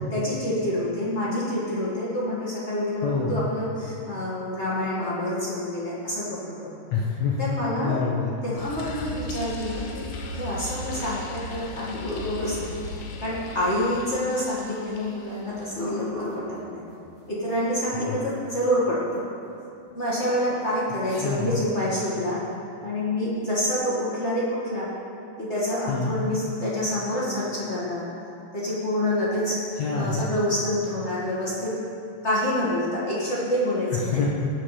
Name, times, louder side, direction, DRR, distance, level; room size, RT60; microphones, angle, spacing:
voice 1, 0.1-6.7 7.4-8.0 8.4-10.1 10.3-12.7 13.2-16.8 17.3-19.2 19.9-22.4 22.8-24.9 25.4-28.1 28.5-29.6 29.9-31.7 32.2-34.2, left 1 dB, 40° left, -8 dB, 0.9 m, -27 dB
voice 2, 3.0-3.5 6.9-8.3 18.0-18.2 21.1-21.6 25.9-26.1 29.8-30.3 33.9-34.3, left 5 dB, 70° left, -5 dB, 1.6 m, -27 dB
sound 1, 8.6-15.7, left 2 dB, 85° left, 3.1 m, -37 dB
sound 2, 10.9-11.1 11.6-13.6 15.5-18.2 19.9-20.7, equal, ahead, 2.2 m, -38 dB
18.0 x 6.2 x 5.0 m, 2.7 s
omnidirectional pair, 4.6 m